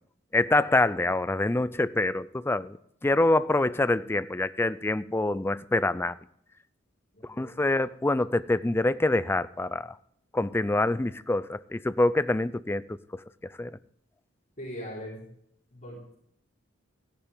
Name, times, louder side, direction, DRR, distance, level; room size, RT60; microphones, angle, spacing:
voice 1, 0.3-2.8 3.0-6.2 7.4-9.9 10.3-13.2 13.6-13.8, left 2 dB, 10° left, 0.4 m, -26 dB
voice 2, 14.6-15.3 15.7-16.2, equal, 40° left, 3.8 m, -40 dB
14.5 x 10.5 x 3.5 m
head